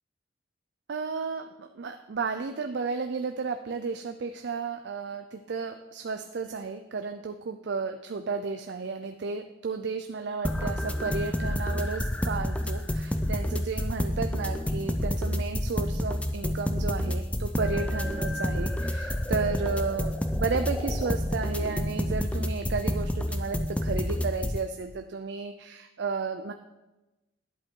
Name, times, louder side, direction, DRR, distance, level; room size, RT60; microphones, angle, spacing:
voice 1, 0.9-26.5, right 4 dB, 60° right, 7 dB, 0.4 m, -33 dB
sound 1, 10.4-24.6, left 1 dB, 5° left, 0.5 m, -29 dB
11.0 x 7.9 x 3.8 m, 1.0 s
head